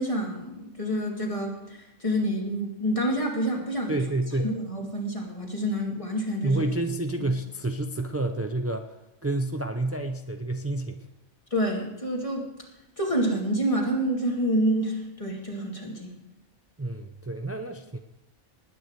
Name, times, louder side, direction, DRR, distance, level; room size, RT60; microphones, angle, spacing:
voice 1, 0.0-4.0 4.4-6.6 7.2-7.3 11.5-12.5 13.0-16.1, equal, 25° left, 0 dB, 2.6 m, -28 dB
voice 2, 3.9-4.5 6.4-9.0 9.2-11.1 16.8-18.0, right 2 dB, 25° right, 5 dB, 0.3 m, -29 dB
20.0 x 9.5 x 4.8 m, 0.95 s
omnidirectional pair, 1.4 m